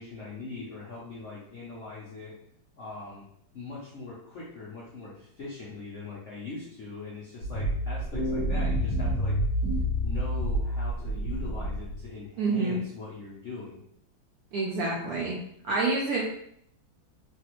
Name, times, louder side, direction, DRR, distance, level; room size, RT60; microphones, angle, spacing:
voice 1, 0.0-2.3 2.8-3.2 3.5-9.4 10.0-13.8, left 3 dB, 70° left, -6 dB, 0.7 m, -41 dB
sound 1, 7.4-12.1, equal, 45° left, 1.0 m, -28 dB
voice 2, 12.4-12.8 14.5-15.3 15.6-16.3, right 3 dB, 75° right, -3 dB, 0.9 m, -27 dB
3.3 x 2.4 x 2.9 m, 0.70 s
omnidirectional pair, 2.1 m